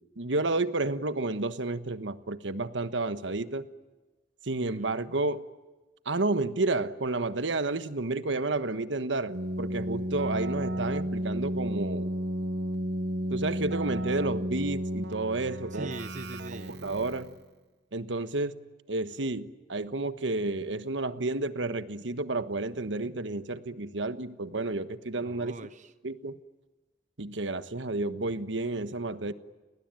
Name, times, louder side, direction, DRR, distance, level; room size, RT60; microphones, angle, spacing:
voice 1, 0.0-3.7 4.4-5.4 6.0-12.1 13.3-15.9 16.7-17.3 17.9-18.5 18.9-25.5 26.0-26.4 27.2-29.3, right 2 dB, 80° right, 12 dB, 1.3 m, -31 dB
voice 2, 4.6-5.1 15.7-16.8 25.2-25.9, right 2 dB, 40° right, 12 dB, 1.0 m, -42 dB
Keyboard (musical), 9.3-17.4, equal, 65° right, 1.1 m, -33 dB
30.0 x 20.5 x 9.1 m, 1.2 s
head